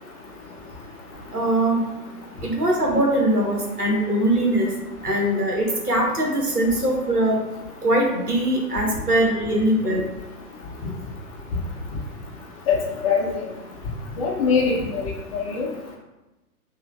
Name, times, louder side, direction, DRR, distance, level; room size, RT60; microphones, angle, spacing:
voice 1, 1.3-1.8 2.4-4.7 5.0-7.4 7.8-10.1, right 1 dB, 85° right, -1 dB, 1.2 m, -21 dB
voice 2, 13.0-13.4 14.2-15.7, left 5 dB, 25° left, -2 dB, 0.5 m, -22 dB
5.7 x 2.6 x 2.4 m, 1.0 s
figure-of-eight pair, 110°, 44 cm